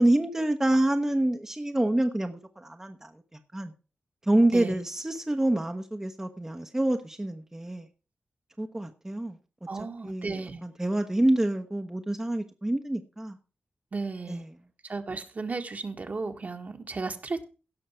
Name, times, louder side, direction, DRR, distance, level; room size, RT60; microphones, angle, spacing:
voice 1, 0.0-3.1 3.5-3.7 4.2-7.9 8.6-9.4 10.0-13.4 14.3-14.5, right 1 dB, 15° right, 1.0 m, -27 dB
voice 2, 9.7-10.6 13.9-14.4 14.8-17.4, right 3 dB, 45° right, 1.6 m, -34 dB
16.5 x 6.3 x 4.4 m
wide cardioid pair, 115°, 4 cm